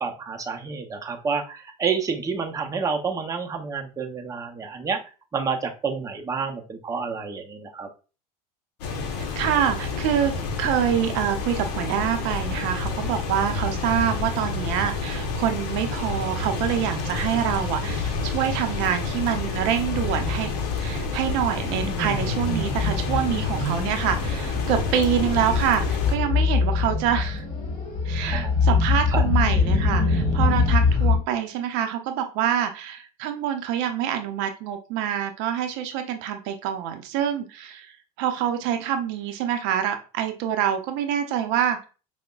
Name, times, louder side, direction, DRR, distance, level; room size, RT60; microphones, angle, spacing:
voice 1, 0.0-5.0 5.3-7.9 28.3-28.5 29.1-29.2, right 5 dB, 15° right, 3 dB, 0.6 m, -29 dB
sound 1, 8.8-26.2, left 4 dB, 70° left, 0.7 m, -29 dB
voice 2, 9.4-20.5 20.8-27.4 28.0-41.9, right 9 dB, 60° right, 6 dB, 0.6 m, -26 dB
sound 2, 19.1-31.2, left 4 dB, 45° left, 1.6 m, -25 dB
5.0 x 2.1 x 2.2 m, 0.33 s
hypercardioid pair, 85°, 21 cm